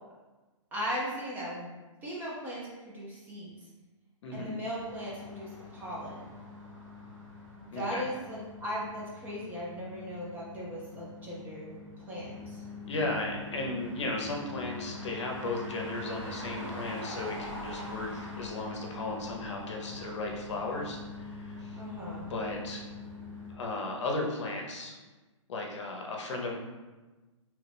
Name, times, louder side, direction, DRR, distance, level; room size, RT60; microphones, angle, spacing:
voice 1, 0.7-1.7 2.0-3.5 4.3-6.4 7.7-11.8 12.1-12.6 21.8-22.3, equal, 10° right, -6 dB, 0.4 m, -38 dB
voice 2, 4.2-4.5 7.7-8.1 12.8-21.8 22.3-22.8 23.5-24.9 25.5-26.6, left 2 dB, 60° left, 0 dB, 0.7 m, -35 dB
sound 1, 4.7-23.5, left 3 dB, 80° right, 1.3 m, -44 dB
3.0 x 2.3 x 3.3 m, 1.2 s
hypercardioid pair, 150°, 16 cm